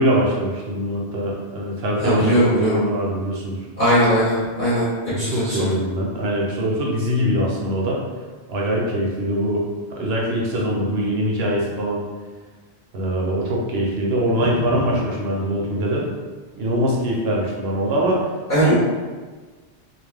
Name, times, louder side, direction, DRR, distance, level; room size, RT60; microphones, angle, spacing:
voice 1, 0.0-3.6 5.1-8.0 8.5-12.1 12.9-16.0 16.5-18.2 18.6-18.7, equal, 65° right, -3 dB, 0.8 m, -23 dB
voice 2, 2.0-2.8 3.8-4.9 5.2-5.6 18.5-18.7, equal, 45° left, -12 dB, 0.9 m, -19 dB
2.4 x 2.2 x 3.3 m, 1.4 s
omnidirectional pair, 1.2 m